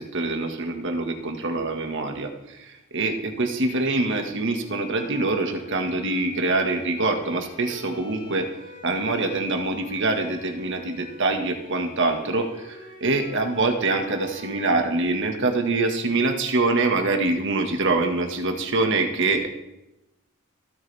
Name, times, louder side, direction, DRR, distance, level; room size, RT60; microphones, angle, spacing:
voice 1, 0.0-8.5 8.8-19.5, right 3 dB, 60° right, 4 dB, 1.7 m, -25 dB
Bowed string instrument, 4.6-15.6, left 2 dB, 50° left, 3.8 m, -47 dB
26.0 x 9.6 x 3.5 m, 0.92 s
head